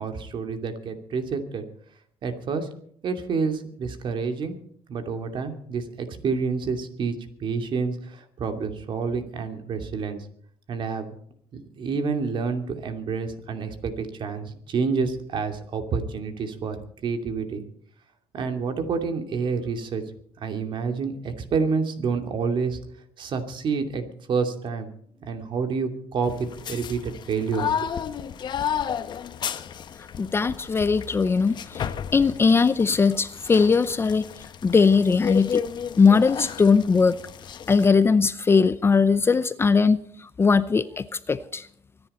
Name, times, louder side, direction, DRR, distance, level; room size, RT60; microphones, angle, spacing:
voice 1, 0.0-1.7 2.2-2.7 3.0-4.6 4.9-10.3 10.7-11.2 11.8-16.8 17.0-17.6 18.3-20.0 20.4-22.8 23.2-24.9 25.3-27.9, right 5 dB, 50° right, 6 dB, 2.7 m, -28 dB
sound 1, 26.2-37.9, left 8 dB, 45° left, 1.1 m, -33 dB
voice 2, 30.2-31.5 32.1-34.2 34.6-35.6 36.0-37.1 37.7-40.0 40.4-41.6, left 5 dB, 25° left, 14 dB, 0.6 m, -19 dB
24.0 x 10.5 x 4.3 m, 0.62 s
cardioid pair, 120°, 10 cm